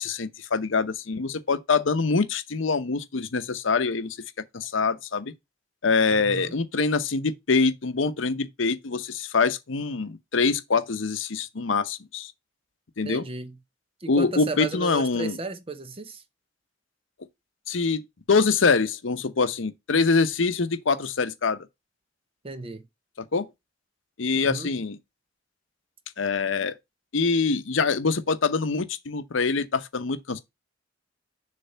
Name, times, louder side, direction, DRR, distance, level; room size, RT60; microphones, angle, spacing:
voice 1, 0.0-4.2 4.5-5.3 5.8-12.3 13.0-13.3 14.1-15.4 17.7-21.6 23.3-23.5 24.2-25.0 26.2-26.8 27.1-30.4, left 4 dB, 75° left, 0.8 m, -24 dB
voice 2, 6.1-6.5 13.0-13.6 14.0-16.2 22.4-22.8 24.4-24.7, right 3 dB, 30° right, 0.7 m, -34 dB
6.8 x 3.3 x 5.5 m
head